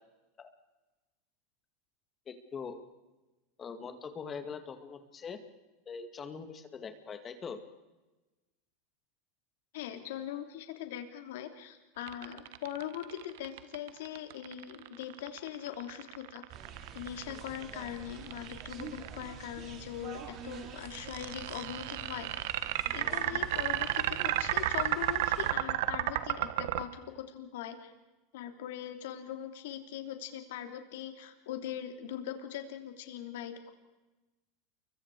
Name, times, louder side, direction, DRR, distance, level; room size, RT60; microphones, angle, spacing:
voice 1, 2.3-2.8 3.6-5.4 5.9-7.6, left 5 dB, 25° left, 8 dB, 2.3 m, -42 dB
voice 2, 9.7-16.4 16.9-22.3 22.9-27.9 28.3-33.7, left 10 dB, 75° left, 6 dB, 3.3 m, -41 dB
sound 1, 12.0-19.3 20.8-26.8, right 15 dB, 70° right, 1.3 m, -32 dB
sound 2, 16.5-25.5, right 7 dB, 40° right, 3.3 m, -47 dB
29.0 x 24.0 x 4.9 m, 1.1 s
supercardioid pair, 125°, 0 cm